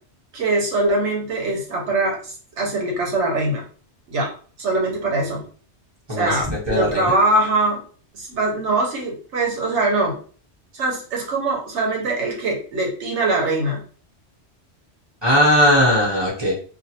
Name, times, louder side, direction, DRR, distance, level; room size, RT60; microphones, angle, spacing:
voice 1, 0.3-3.6 4.1-4.3 4.6-5.4 6.1-7.8 8.1-10.2 10.7-13.8, right 2 dB, 85° right, -1 dB, 1.2 m, -22 dB
voice 2, 6.1-7.2 15.2-16.5, equal, 25° right, -5 dB, 0.8 m, -18 dB
2.5 x 2.4 x 2.8 m, 0.42 s
omnidirectional pair, 1.2 m